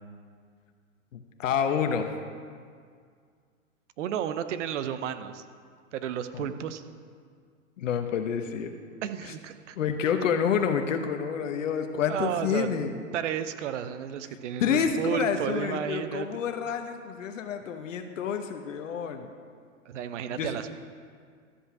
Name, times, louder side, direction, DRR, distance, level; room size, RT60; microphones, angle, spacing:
voice 1, 1.1-2.1 6.3-6.5 7.8-8.7 9.8-12.9 14.6-19.3 20.4-20.5, left 7 dB, 65° left, 6 dB, 1.0 m, -28 dB
voice 2, 4.0-5.4 5.9-6.8 9.0-9.8 12.1-12.8 13.1-16.3 19.9-20.7, right 9 dB, 60° right, 11 dB, 0.8 m, -32 dB
13.0 x 5.5 x 7.0 m, 2.1 s
hypercardioid pair, 135°, 41 cm